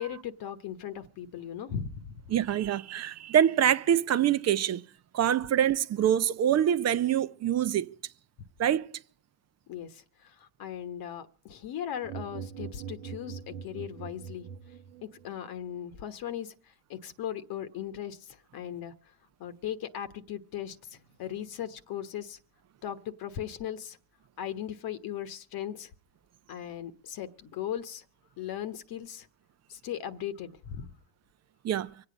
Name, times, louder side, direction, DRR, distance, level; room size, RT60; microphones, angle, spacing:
voice 1, 0.0-2.2 9.7-14.4 15.0-18.9 19.4-22.4 22.8-24.0 24.4-25.9 26.5-28.0 28.4-29.3 29.7-30.9, left 10 dB, 50° left, 1.2 m, -38 dB
voice 2, 2.3-4.8 5.1-7.9 8.6-8.9 31.6-31.9, right 10 dB, 35° right, 0.7 m, -25 dB
sound 1, 12.0-15.3, right 7 dB, 75° right, 1.1 m, -42 dB
25.0 x 8.7 x 5.1 m
supercardioid pair, 90°, 47 cm